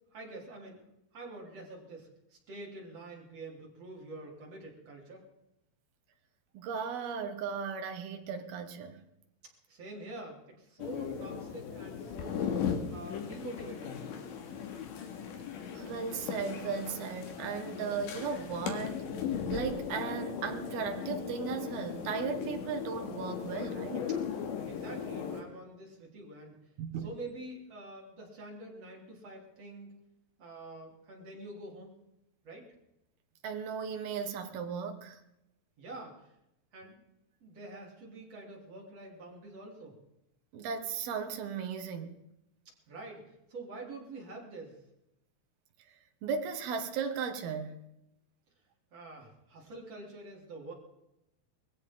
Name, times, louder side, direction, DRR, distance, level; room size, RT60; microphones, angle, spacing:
voice 1, 0.1-0.8 1.1-5.2 9.7-14.0 24.7-26.6 27.0-29.9 30.4-31.9 32.4-32.7 35.8-36.3 36.7-37.0 37.4-40.0 42.9-44.8 48.9-50.7, right 2 dB, 35° right, 4.8 m, -46 dB
voice 2, 6.5-9.0 15.7-19.1 19.5-24.1 26.8-27.1 33.4-35.2 40.5-42.2 46.2-47.8, right 6 dB, 65° right, 3.0 m, -36 dB
sound 1, 10.8-25.4, left 7 dB, 80° left, 4.3 m, -37 dB
22.0 x 16.0 x 3.8 m
omnidirectional pair, 5.2 m